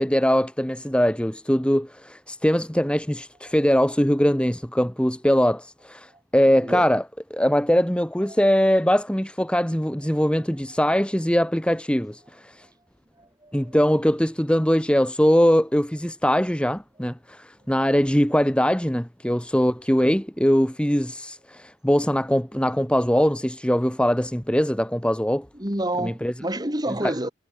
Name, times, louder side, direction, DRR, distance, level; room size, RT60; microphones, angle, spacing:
voice 1, 0.0-7.0 7.3-12.7 13.5-25.5 26.0-26.3 26.9-27.1, equal, 5° left, 2.0 m, -22 dB
voice 2, 13.2-13.8 25.6-27.3, right 1 dB, 20° right, 5.8 m, -29 dB
head